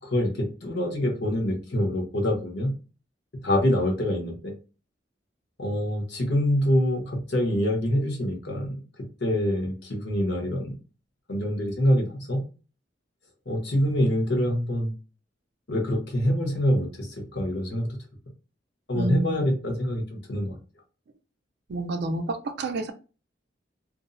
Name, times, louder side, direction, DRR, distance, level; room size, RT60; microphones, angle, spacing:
voice 1, 0.0-2.7 3.4-4.6 5.6-10.7 11.3-12.4 13.5-14.9 15.7-17.9 18.9-20.6, equal, 70° left, 0.9 m, -25 dB
voice 2, 18.9-19.5 21.7-22.9, right 2 dB, 65° right, 0.4 m, -29 dB
2.5 x 2.0 x 2.5 m
head